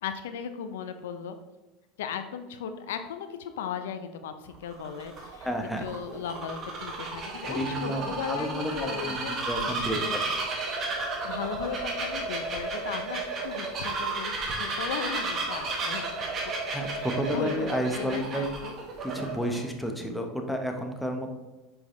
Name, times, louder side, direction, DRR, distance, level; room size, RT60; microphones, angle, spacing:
voice 1, 0.0-1.4 2.0-5.5 5.8-10.2 11.2-16.5 16.9-18.8, left 7 dB, 85° left, 8 dB, 0.5 m, -37 dB
Bird vocalization bird call bird song, 4.5-19.6, right 3 dB, 40° right, 1.4 m, -33 dB
voice 2, 5.4-5.8 7.5-10.3 16.7-18.5 19.0-21.3, equal, ahead, 3 dB, 0.9 m, -31 dB
6.2 x 4.8 x 3.2 m, 1.1 s
supercardioid pair, 105°, 0 cm